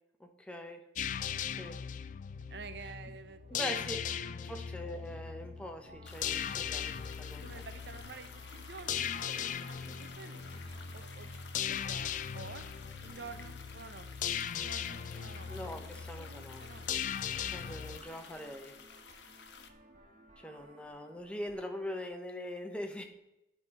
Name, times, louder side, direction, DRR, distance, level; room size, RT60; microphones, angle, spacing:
voice 1, 0.2-0.8 1.5-1.8 3.5-4.0 4.4-7.6 15.5-16.7 17.5-18.8 20.4-23.0, left 1 dB, 5° left, 4 dB, 0.9 m, -42 dB
sound 1, 1.0-18.0, left 8 dB, 45° left, 0.3 m, -39 dB
voice 2, 2.5-3.9 7.4-12.6 13.0-14.1 14.5-15.5 15.8-16.9, right 4 dB, 70° right, 11 dB, 0.6 m, -50 dB
sound 2, 2.9-22.1, right 2 dB, 45° right, 1.9 m, -59 dB
sound 3, 6.1-19.7, left 6 dB, 80° left, 0.8 m, -52 dB
10.5 x 4.0 x 5.3 m, 0.90 s
head